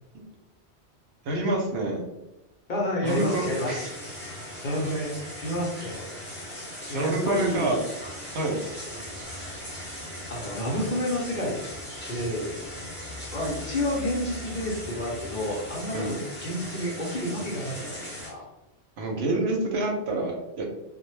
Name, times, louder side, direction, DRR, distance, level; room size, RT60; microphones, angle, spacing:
voice 1, 1.2-2.0 3.0-3.9 6.9-7.8 8.3-8.6 15.9-16.2 19.0-20.6, right 2 dB, 75° right, 1 dB, 0.8 m, -27 dB
voice 2, 2.7-4.0 4.6-5.1 5.4-6.1 6.9-7.8 8.9-9.7 10.3-11.5 12.1-12.6 13.3-18.5, left 1 dB, 50° left, -4 dB, 0.7 m, -30 dB
sound 1, 3.0-18.3, left 1 dB, 15° left, 0.6 m, -39 dB
2.1 x 2.1 x 3.0 m, 0.94 s
omnidirectional pair, 1.1 m